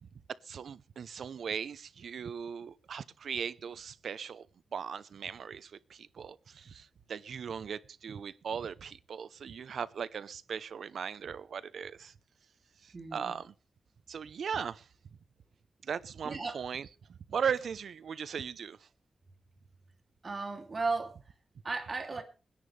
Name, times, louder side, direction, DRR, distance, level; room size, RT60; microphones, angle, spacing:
voice 1, 0.5-4.5 4.7-12.1 12.8-13.5 14.1-14.9 15.8-18.8, right 7 dB, 85° right, 0.8 m, -38 dB
voice 2, 12.9-13.3 16.2-16.6 20.2-21.2 21.6-22.2, right 3 dB, 35° right, 3.0 m, -35 dB
27.5 x 10.5 x 3.4 m
wide cardioid pair, 165°, 0 cm